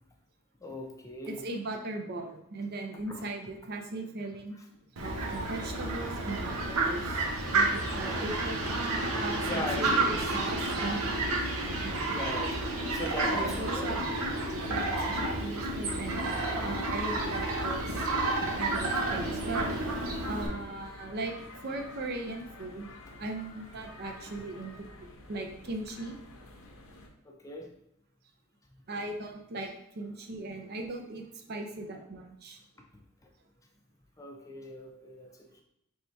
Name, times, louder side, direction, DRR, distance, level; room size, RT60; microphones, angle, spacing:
voice 1, 0.6-1.4 3.1-3.2 8.1-8.3 9.4-10.3 12.1-14.0 19.1-19.4 23.9-24.0 27.2-27.7 34.2-35.6, left 1 dB, 15° left, 1 dB, 0.4 m, -39 dB
voice 2, 1.3-4.6 5.0-7.3 7.5-8.6 9.2-11.2 11.8-12.1 13.3-14.2 14.7-18.1 18.6-20.0 20.3-21.3 21.6-24.7 25.3-26.1 28.9-32.6, right 2 dB, 45° right, 4 dB, 0.5 m, -38 dB
Fowl, 5.0-20.5, right 2 dB, 85° right, 0.8 m, -30 dB
sound 1, 16.3-27.1, left 2 dB, 80° left, 0.8 m, -50 dB
3.4 x 2.7 x 4.4 m, 0.76 s
head